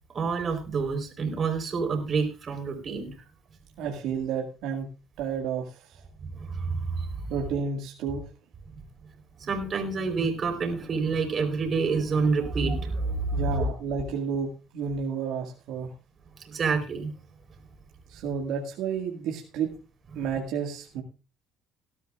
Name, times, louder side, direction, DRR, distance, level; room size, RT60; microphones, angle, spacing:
voice 1, 0.1-3.1 6.2-7.1 9.4-13.5 16.4-17.1, right 4 dB, 40° right, 3 dB, 4.0 m, -28 dB
voice 2, 3.8-4.9 5.2-6.0 7.3-8.2 13.3-15.9 18.1-19.7 20.2-21.0, right 6 dB, 75° right, 0 dB, 1.9 m, -31 dB
18.5 x 12.0 x 2.4 m, 0.33 s
supercardioid pair, 95°, 0 cm